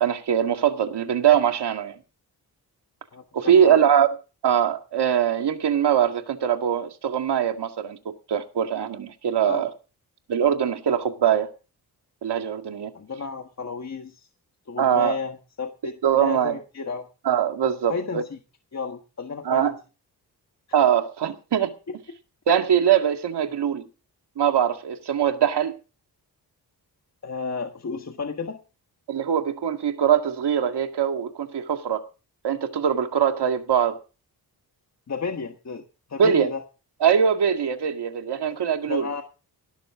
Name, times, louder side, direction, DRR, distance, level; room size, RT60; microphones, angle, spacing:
voice 1, 0.0-1.9 3.3-4.1 4.4-8.0 8.3-9.7 10.3-11.5 12.2-12.9 14.8-15.2 16.0-16.6 17.3-18.2 19.4-19.7 20.7-21.7 22.5-23.9 24.4-25.8 29.1-32.0 32.4-34.0 36.2-36.5 37.0-39.1, right 8 dB, 85° right, 2.1 m, -22 dB
voice 2, 3.1-3.8 9.3-9.7 12.9-14.3 14.7-17.1 17.9-18.4 18.7-19.7 27.2-28.6 35.1-35.8 36.1-36.6 38.4-38.6 38.9-39.2, left 5 dB, 40° left, 1.6 m, -32 dB
18.0 x 13.0 x 3.7 m
wide cardioid pair, 130°, 39 cm